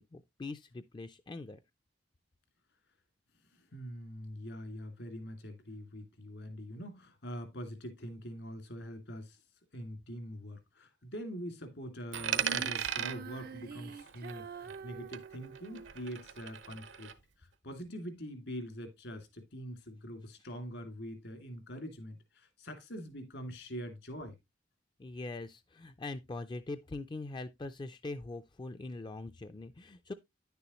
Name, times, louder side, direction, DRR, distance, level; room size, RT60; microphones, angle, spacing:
voice 1, 0.0-1.6 25.0-30.1, left 2 dB, 25° left, 0.4 m, -42 dB
voice 2, 3.5-9.4 9.7-17.1 17.4-24.4, equal, 75° left, 2.4 m, -44 dB
Coin (dropping), 12.1-14.9 15.1-17.1, right 9 dB, 80° right, 0.9 m, -37 dB
Female singing, 12.4-15.9, right 7 dB, 55° right, 0.4 m, -46 dB
10.0 x 6.9 x 3.0 m
head